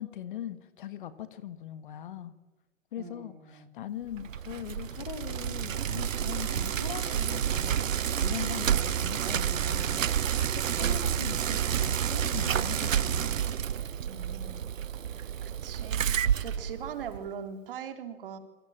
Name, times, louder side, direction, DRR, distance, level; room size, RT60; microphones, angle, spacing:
voice 1, 0.0-2.3 2.9-13.3, left 11 dB, 35° left, 13 dB, 1.6 m, -41 dB
voice 2, 3.0-3.7 14.0-14.7 15.0-18.4, right 7 dB, 40° right, 7 dB, 3.6 m, -41 dB
Bicycle, 4.1-17.3, right 9 dB, 65° right, 0.9 m, -29 dB
27.5 x 24.0 x 8.9 m, 1.1 s
hypercardioid pair, 150°, 42 cm